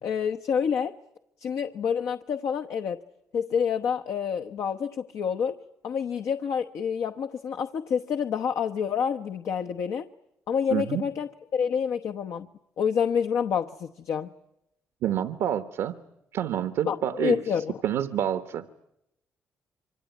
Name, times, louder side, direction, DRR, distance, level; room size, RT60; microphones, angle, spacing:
voice 1, 0.0-0.9 1.4-3.0 3.3-5.6 5.8-10.1 10.5-12.5 12.8-14.3 16.8-17.8, left 7 dB, 75° left, 5 dB, 1.0 m, -28 dB
voice 2, 10.7-11.0 15.0-16.0 16.3-17.5 17.8-18.6, right 10 dB, 85° right, 10 dB, 1.1 m, -28 dB
26.5 x 24.5 x 9.3 m, 0.85 s
cardioid pair, 70°, 5 cm